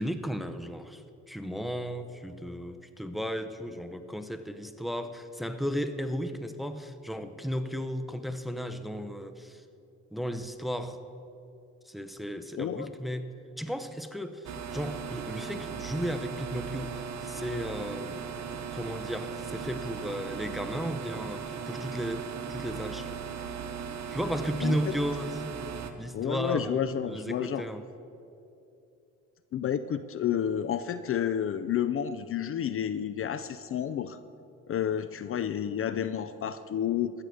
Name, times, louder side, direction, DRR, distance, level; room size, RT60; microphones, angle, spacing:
voice 1, 0.0-9.6 10.1-11.0 11.9-13.3 13.6-18.2 18.7-23.1 24.1-25.4 26.0-27.8, equal, ahead, 10 dB, 0.7 m, -34 dB
voice 2, 12.6-12.9 24.6-24.8 26.1-27.7 29.5-34.2 34.7-37.1, left 9 dB, 45° left, 13 dB, 0.4 m, -30 dB
sound 1, 14.4-25.9, right 6 dB, 65° right, 1.0 m, -38 dB
14.5 x 6.8 x 6.3 m, 2.7 s
cardioid pair, 90°, 30 cm